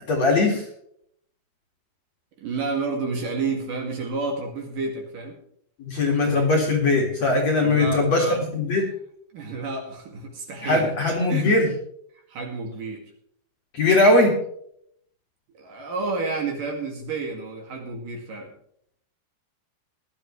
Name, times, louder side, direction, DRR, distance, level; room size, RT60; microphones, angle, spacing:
voice 1, 0.1-0.6 5.8-8.9 10.6-11.7 13.7-14.4, left 2 dB, 45° left, 0 dB, 2.7 m, -20 dB
voice 2, 2.4-5.4 7.6-8.4 9.3-10.9 11.3-11.5 12.3-13.0 15.5-18.5, right 3 dB, 55° right, 1 dB, 3.4 m, -30 dB
19.0 x 12.0 x 3.2 m, 0.68 s
omnidirectional pair, 5.1 m